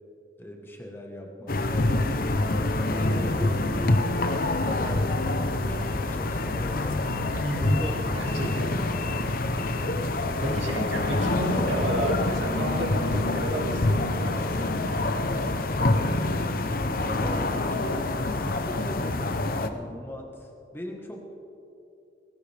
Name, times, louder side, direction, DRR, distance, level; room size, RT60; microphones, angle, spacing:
voice 1, 0.4-2.0 2.6-7.2 7.5-8.0 10.4-10.9 15.6-16.2 17.0-21.3, equal, 10° left, 1 dB, 1.4 m, -39 dB
sound 1, 1.5-19.7, left 2 dB, 50° left, 0.8 m, -26 dB
voice 2, 7.3-8.8 10.2-14.4, right 1 dB, 85° right, 0 dB, 2.4 m, -32 dB
20.0 x 17.5 x 3.5 m, 2.7 s
head